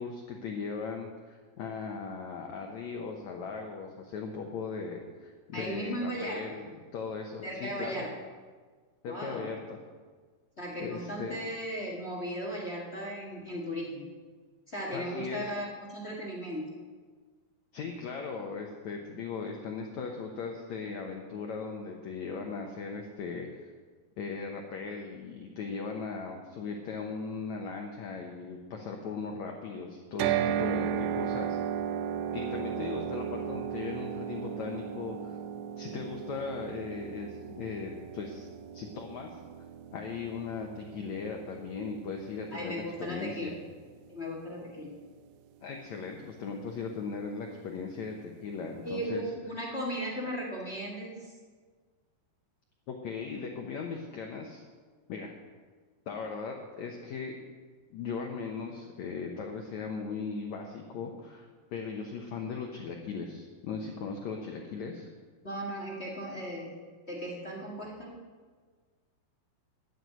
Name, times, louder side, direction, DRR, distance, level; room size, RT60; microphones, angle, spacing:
voice 1, 0.0-8.1 9.0-9.8 10.8-11.4 14.9-15.5 17.7-23.5 24.2-31.6 32.3-35.4 35.8-38.5 38.7-39.4 39.9-43.5 45.6-49.2 52.9-54.6 55.1-55.3 56.1-57.4 57.9-65.1, left 5 dB, 85° left, 2 dB, 1.6 m, -38 dB
voice 2, 5.5-6.4 7.4-8.1 9.1-9.5 10.6-14.1 14.7-16.7 42.5-43.5 44.1-44.9 48.8-51.3 65.4-66.7 67.1-68.2, equal, 50° left, -2 dB, 0.7 m, -36 dB
sound 1, 30.2-44.3, right 9 dB, 85° right, 2.7 m, -36 dB
12.0 x 7.9 x 9.2 m, 1.5 s
omnidirectional pair, 4.8 m